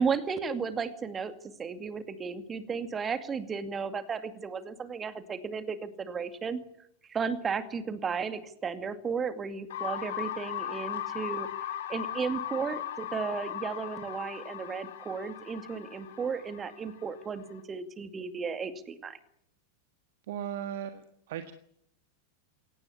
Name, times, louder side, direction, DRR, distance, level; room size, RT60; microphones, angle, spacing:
voice 1, 0.0-6.6 7.1-11.5 11.9-19.2, right 5 dB, 20° right, 11 dB, 2.3 m, -34 dB
sound 1, 9.7-17.6, left 11 dB, 60° left, 3.5 m, -38 dB
voice 2, 20.3-21.0 21.3-21.5, right 9 dB, 55° right, 9 dB, 1.6 m, -36 dB
23.0 x 18.0 x 9.9 m, 0.71 s
figure-of-eight pair, 90°, 0 cm